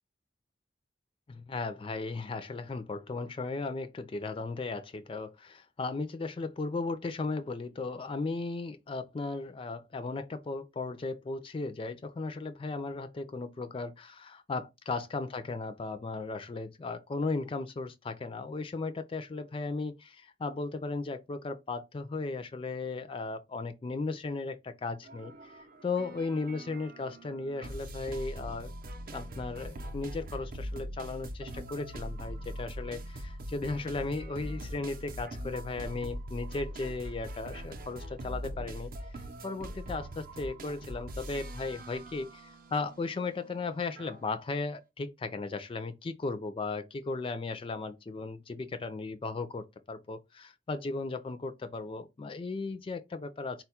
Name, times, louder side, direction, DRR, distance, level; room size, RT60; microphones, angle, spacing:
voice 1, 1.3-28.7 29.1-38.9 39.4-53.6, left 3 dB, 30° left, 0.3 m, -36 dB
sound 1, 25.0-44.2, equal, 50° right, 0.6 m, -42 dB
4.2 x 2.3 x 4.2 m
head